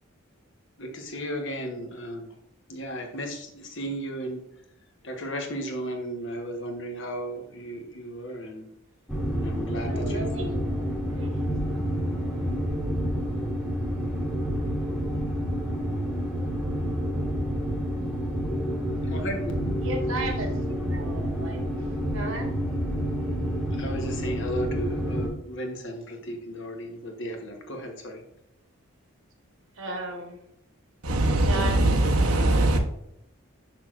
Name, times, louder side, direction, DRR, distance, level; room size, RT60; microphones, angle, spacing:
voice 1, 0.8-2.3 2.7-4.4 5.0-8.6 9.4-10.6 19.1-19.6 23.8-28.2, equal, 55° left, 3 dB, 1.2 m, -35 dB
sound 1, 9.1-25.3, equal, 5° left, 1.2 m, -29 dB
voice 2, 9.8-11.5 19.8-22.5 29.8-30.4 31.4-32.8, right 2 dB, 65° right, 3 dB, 1.3 m, -36 dB
voice 3, 31.0-32.8, right 1 dB, 80° right, 3 dB, 1.0 m, -21 dB
6.5 x 6.0 x 2.5 m, 0.79 s
head